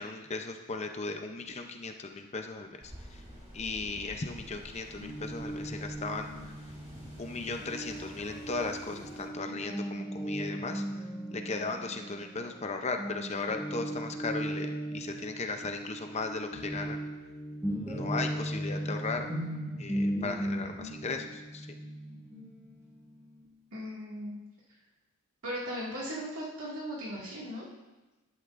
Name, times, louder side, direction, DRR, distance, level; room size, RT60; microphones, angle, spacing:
voice 1, 0.0-3.2 3.5-6.5 7.2-17.0 17.9-19.3 19.8-21.8, left 3 dB, 30° left, 5 dB, 0.6 m, -37 dB
sound 1, 2.8-9.3, equal, 30° right, 3.0 m, -49 dB
Guitar, 5.0-12.7 13.0-23.4, right 1 dB, 10° right, 1.4 m, -37 dB
voice 2, 23.7-24.4 25.4-27.6, equal, 85° right, -5 dB, 2.1 m, -37 dB
11.5 x 11.0 x 2.6 m, 1.1 s
head